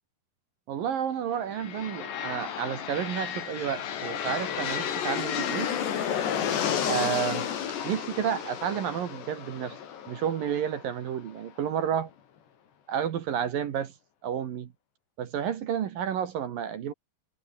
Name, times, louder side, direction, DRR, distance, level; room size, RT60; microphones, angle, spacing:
voice 1, 0.7-5.7 6.9-7.5 7.8-9.8 10.1-12.1 12.9-13.9 14.2-14.7 15.2-16.9, right 8 dB, 60° right, 2.9 m, -31 dB
sound 1, 1.5-11.3, left 8 dB, 65° left, 5.2 m, -32 dB
omnidirectional pair, 5.4 m